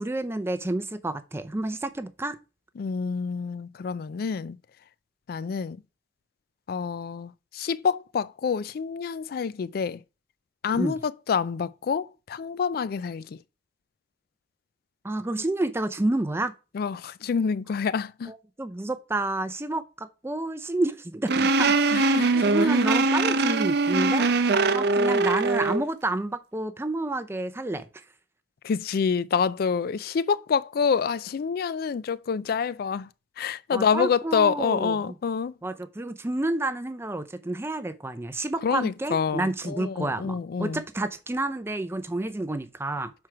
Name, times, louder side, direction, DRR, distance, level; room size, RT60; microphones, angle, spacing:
voice 1, 0.0-2.4 10.7-11.0 15.0-16.5 18.3-22.2 22.4-24.3 24.7-27.9 33.7-35.2 35.6-43.1, right 2 dB, 15° right, 0.5 m, -29 dB
voice 2, 2.8-4.6 5.3-5.8 6.7-10.0 10.6-13.3 16.7-18.3 21.9-22.5 28.6-33.1 33.4-35.5 38.6-40.8, left 6 dB, 55° left, 0.3 m, -27 dB
sound 1, 21.3-25.8, right 3 dB, 60° right, 0.6 m, -22 dB
6.1 x 4.5 x 4.6 m
head